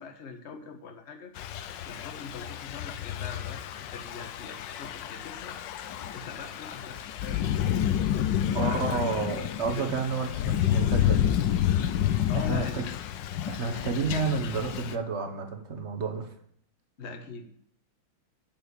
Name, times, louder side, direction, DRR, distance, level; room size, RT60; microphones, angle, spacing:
voice 1, 0.0-1.3 1.7-5.6 6.1-7.5 8.1-9.0 9.7-9.9 12.3-12.8 17.0-17.5, left 5 dB, 35° left, 5 dB, 1.4 m, -42 dB
Thunder / Rain, 1.4-15.0, left 11 dB, 70° left, 1.3 m, -29 dB
voice 2, 8.5-11.3 12.3-12.8 13.5-16.3, right 4 dB, 40° right, 5 dB, 1.4 m, -30 dB
7.8 x 7.0 x 8.4 m, 0.66 s
omnidirectional pair, 2.2 m